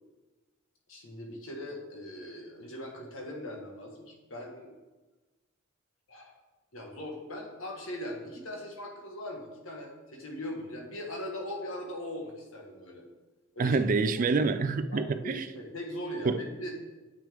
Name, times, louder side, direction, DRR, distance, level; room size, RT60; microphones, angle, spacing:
voice 1, 0.9-4.7 6.1-6.3 6.7-13.0 13.5-13.8 14.9-16.7, left 1 dB, 70° left, 0 dB, 1.4 m, -40 dB
voice 2, 13.6-15.5 16.2-16.4, right 4 dB, 40° right, 11 dB, 0.3 m, -27 dB
8.4 x 6.2 x 3.5 m, 1.2 s
head